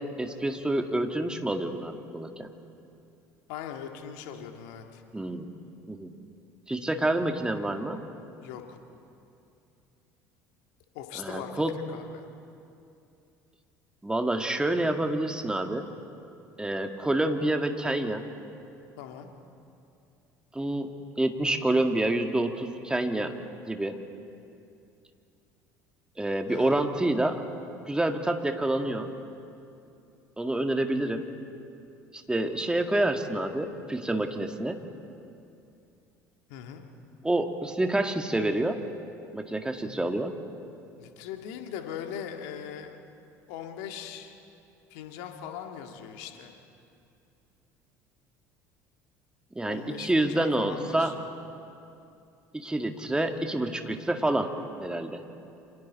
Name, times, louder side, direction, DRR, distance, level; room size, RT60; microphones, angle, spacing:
voice 1, 0.0-2.5 5.1-5.5 5.9-6.1 6.7-8.0 11.2-11.7 14.0-15.9 16.6-18.2 20.5-23.3 23.7-24.0 26.2-27.4 27.9-29.1 30.4-31.3 32.1-34.8 37.2-38.8 39.3-40.4 49.6-51.2 52.5-54.5 54.8-55.2, right 1 dB, 10° right, 5 dB, 1.9 m, -28 dB
voice 2, 3.5-5.0 8.4-8.8 10.9-12.3 19.0-19.3 26.5-26.9 36.5-36.9 41.0-42.9 43.5-44.3 44.9-46.5 49.7-51.3, left 8 dB, 65° left, 4 dB, 1.9 m, -40 dB
28.5 x 26.0 x 4.2 m, 2.6 s
figure-of-eight pair, 60°, 9 cm